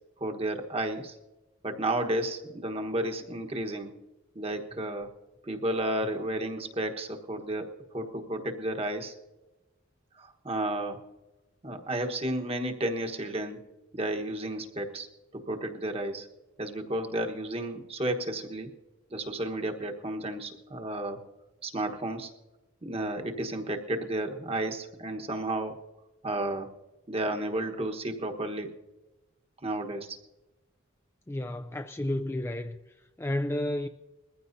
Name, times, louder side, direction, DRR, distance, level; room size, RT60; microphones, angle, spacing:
voice 1, 0.2-1.2 1.6-3.9 4.3-5.1 5.4-9.1 10.1-11.0 11.6-13.6 13.9-15.1 15.3-16.3 16.6-18.7 19.1-21.2 21.6-22.3 22.8-25.8 26.2-26.7 27.1-28.7 29.6-30.2, right 1 dB, 30° right, 1.2 m, -32 dB
voice 2, 31.3-32.8 33.2-33.9, left 1 dB, 10° left, 0.4 m, -31 dB
21.5 x 15.0 x 2.7 m
head